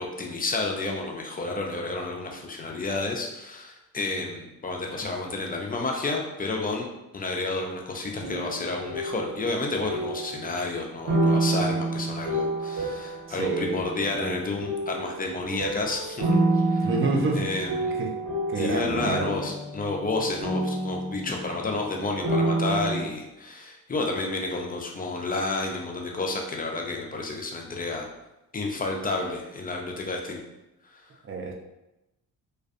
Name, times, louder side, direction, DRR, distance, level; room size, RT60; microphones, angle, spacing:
voice 1, 0.0-6.9 7.1-16.3 16.5-16.9 17.4-18.0 18.6-28.1 28.5-30.4 30.9-31.0, left 3 dB, 20° left, 1 dB, 0.4 m, -30 dB
sound 1, 8.1-10.5 11.1-14.2 14.6-21.9 22.2-23.0, right 2 dB, 50° right, 1.0 m, -28 dB
voice 2, 13.3-14.3 16.8-17.7 17.9-18.1 18.5-19.4 31.2-31.5, right 3 dB, 30° right, 1 dB, 0.5 m, -29 dB
2.5 x 2.3 x 2.4 m, 0.95 s
supercardioid pair, 70°, 40 cm